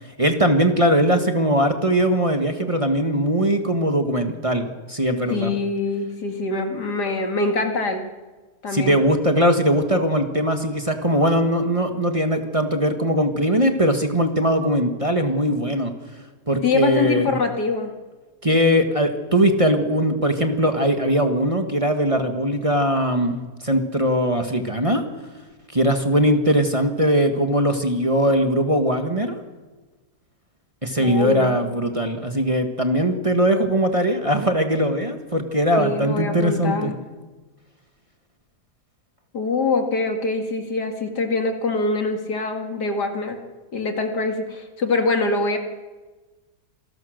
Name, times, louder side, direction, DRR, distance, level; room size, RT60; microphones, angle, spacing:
voice 1, 0.2-5.5 8.7-15.9 16.5-17.3 18.4-25.0 25.7-29.4 30.8-36.9, equal, 20° right, 4 dB, 1.6 m, -20 dB
voice 2, 5.3-8.0 8.6-9.0 16.6-17.9 31.0-31.6 35.8-36.9 39.3-43.4 43.7-45.6, left 3 dB, 80° left, 4 dB, 2.8 m, -24 dB
27.0 x 19.0 x 6.5 m, 1.3 s
omnidirectional pair, 1.7 m